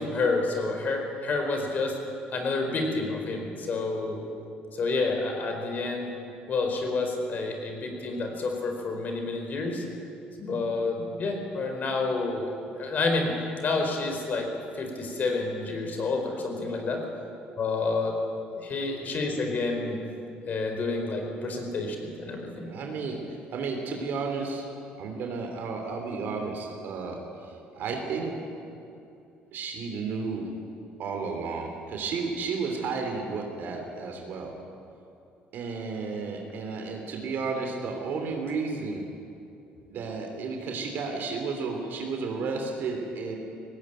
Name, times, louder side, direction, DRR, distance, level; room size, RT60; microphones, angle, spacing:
voice 1, 0.0-1.9 2.3-4.2 4.7-6.1 6.5-9.8 10.4-13.3 13.6-14.5 14.7-17.0 17.6-18.1 18.5-20.0 20.4-22.7, left 3 dB, 50° left, 3 dB, 4.8 m, -29 dB
voice 2, 22.7-23.2 23.5-24.7 25.0-27.2 27.7-28.3 29.5-30.5 31.0-34.5 35.5-39.0 39.9-43.4, right 4 dB, 65° right, 2 dB, 3.1 m, -32 dB
18.5 x 17.0 x 9.1 m, 2.7 s
supercardioid pair, 85°, 4 cm